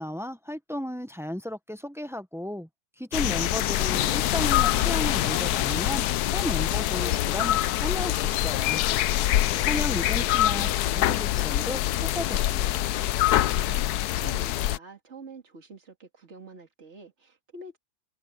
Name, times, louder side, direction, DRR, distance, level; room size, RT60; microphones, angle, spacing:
voice 1, 0.0-2.7 3.0-8.8 9.6-11.8 12.1-12.8, equal, ahead, 0.6 m, -34 dB
sound 1, 3.1-14.8, left 14 dB, 90° left, 1.1 m, -25 dB
voice 2, 9.4-9.8 13.6-17.8, right 3 dB, 45° right, 3.0 m, -46 dB
omnidirectional pair, 1.6 m